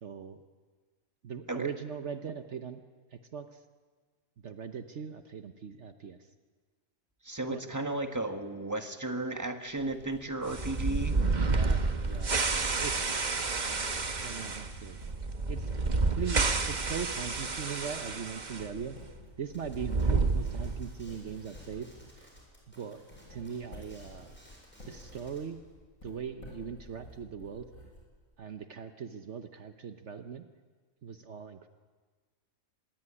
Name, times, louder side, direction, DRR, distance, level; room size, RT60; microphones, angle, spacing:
voice 1, 0.0-0.4 1.2-2.8 3.1-3.6 4.4-6.3 7.5-7.6 11.3-13.0 14.1-15.0 15.5-15.7 16.0-19.0 19.4-21.9 22.2-22.3 22.8-23.0 23.3-24.4 24.9-25.6 26.0-27.7 28.4-30.4 31.0-31.7, right 7 dB, 60° right, 8 dB, 1.3 m, -40 dB
voice 2, 7.2-11.2, right 2 dB, 15° right, 6 dB, 1.6 m, -34 dB
Writing, 9.7-28.5, left 1 dB, 80° left, 8.7 m, -52 dB
sound 1, 10.5-18.7 18.9-19.0 19.7-21.0, right 3 dB, 35° right, 1.3 m, -30 dB
sound 2, 19.5-25.5, equal, 10° left, 7.5 m, -58 dB
25.0 x 21.0 x 10.0 m, 1.5 s
omnidirectional pair, 1.4 m